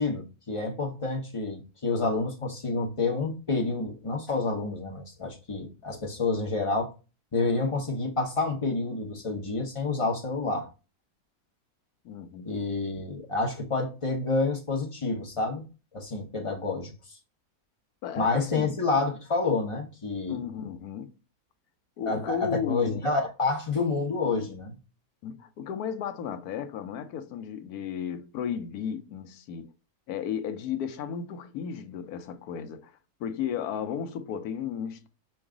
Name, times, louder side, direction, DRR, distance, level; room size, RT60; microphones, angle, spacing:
voice 1, 0.0-6.9 7.3-10.7 12.4-15.6 15.9-16.9 18.2-20.5 22.1-24.8, left 3 dB, 30° left, 0.6 m, -28 dB
voice 2, 12.0-12.5 18.0-18.8 20.3-21.1 22.0-23.0 25.2-29.7 30.1-32.9 33.2-35.1, left 8 dB, 75° left, 1.1 m, -34 dB
5.3 x 2.3 x 3.6 m
omnidirectional pair, 1.7 m